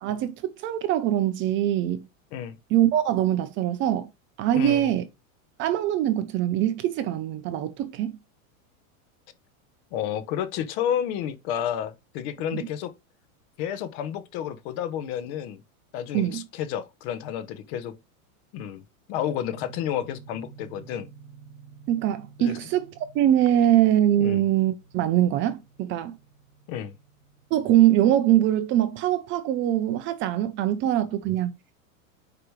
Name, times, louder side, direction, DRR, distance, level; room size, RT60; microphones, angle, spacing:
voice 1, 0.0-2.1 2.7-4.1 4.4-5.1 5.6-8.1 12.5-12.7 16.1-16.5 21.9-26.2 27.5-31.5, right 12 dB, 30° right, 0.5 m, -23 dB
voice 2, 4.5-4.9 9.9-12.9 13.6-15.6 15.9-18.0 18.5-18.8 19.1-21.1 22.4-22.6 24.2-24.4 26.7-26.9, left 9 dB, 50° left, 0.9 m, -31 dB
sound 1, 19.4-29.0, right 5 dB, 55° right, 1.3 m, -51 dB
4.9 x 4.8 x 4.7 m
supercardioid pair, 145°, 42 cm